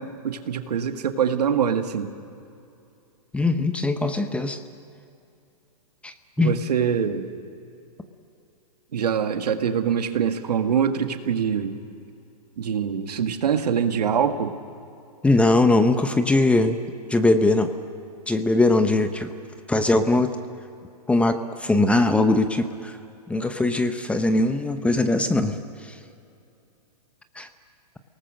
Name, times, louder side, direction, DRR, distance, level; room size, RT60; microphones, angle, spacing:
voice 1, 0.0-2.1 6.4-7.3 8.9-11.8 12.6-14.5, right 7 dB, 75° right, 7 dB, 1.8 m, -24 dB
voice 2, 3.3-4.6 6.0-6.5 15.2-16.8 17.1-17.7 18.3-19.3 19.7-20.3 21.1-23.0 23.3-25.9 27.4-27.5, left 2 dB, 5° left, 9 dB, 0.8 m, -21 dB
28.5 x 19.0 x 6.5 m, 2.6 s
hypercardioid pair, 130°, 20 cm